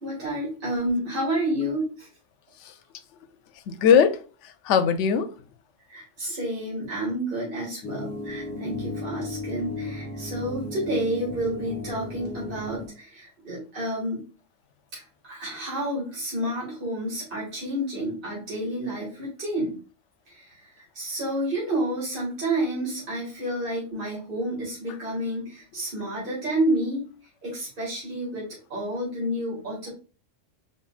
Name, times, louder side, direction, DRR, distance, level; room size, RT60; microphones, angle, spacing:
voice 1, 0.0-2.1 5.9-14.2 14.9-19.8 20.3-27.1 27.4-29.9, right 1 dB, 45° right, 2.1 m, -30 dB
voice 2, 3.7-4.2 4.7-5.3, left 7 dB, 75° left, 0.9 m, -19 dB
sound 1, 7.8-12.9, left 2 dB, 10° left, 1.7 m, -35 dB
5.0 x 3.9 x 2.4 m
omnidirectional pair, 1.3 m